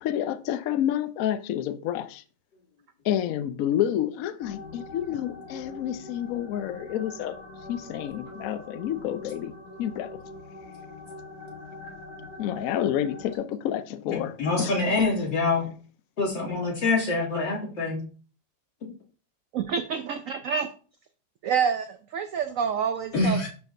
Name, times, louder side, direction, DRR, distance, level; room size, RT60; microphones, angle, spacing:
voice 1, 0.0-2.2 3.0-7.4 7.7-9.5 9.8-10.2 12.4-14.7, left 11 dB, 70° left, 0.8 m, -29 dB
sound 1, 4.4-13.4, left 2 dB, 55° left, 2.5 m, -44 dB
voice 2, 14.1-15.6 16.2-18.0 23.1-23.5, left 3 dB, 90° left, 3.3 m, -25 dB
voice 3, 19.5-20.7 21.4-23.5, right 6 dB, 80° right, 0.7 m, -27 dB
11.5 x 4.7 x 2.6 m
omnidirectional pair, 1.9 m